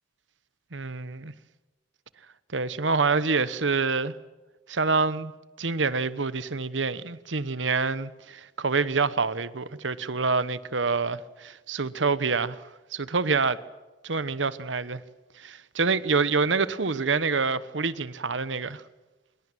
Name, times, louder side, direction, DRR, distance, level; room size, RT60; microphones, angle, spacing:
voice 1, 0.7-1.3 2.5-4.1 4.7-5.3 5.6-13.6 14.0-15.0 15.4-18.8, right 4 dB, 85° right, 1.2 m, -27 dB
25.5 x 22.0 x 9.2 m
head